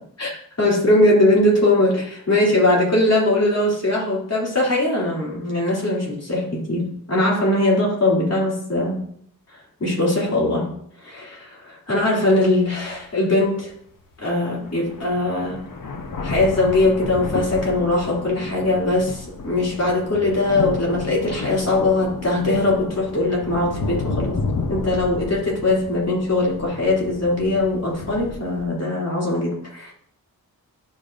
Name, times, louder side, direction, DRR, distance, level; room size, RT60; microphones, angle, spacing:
voice 1, 0.2-9.0 9.8-10.7 11.0-13.7 14.2-15.6 16.2-24.4 24.7-29.9, left 2 dB, 45° left, -4 dB, 2.8 m, -21 dB
sound 1, 12.1-12.2 12.9-13.0 14.2-14.3 14.6-28.7, left 4 dB, 60° left, 0.8 m, -32 dB
11.5 x 5.1 x 2.5 m, 0.65 s
wide cardioid pair, 110°, 37 cm